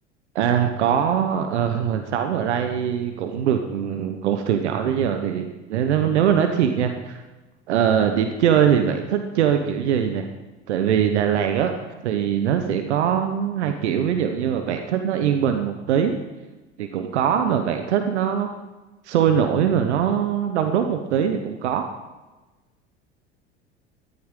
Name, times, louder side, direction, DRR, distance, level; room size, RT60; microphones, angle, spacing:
voice 1, 0.3-7.2 7.7-10.3 10.7-11.7 12.0-16.2 16.8-18.5 19.0-21.9, right 8 dB, 80° right, 7 dB, 1.1 m, -22 dB
14.5 x 13.0 x 3.8 m, 1.1 s
hypercardioid pair, 75°, 34 cm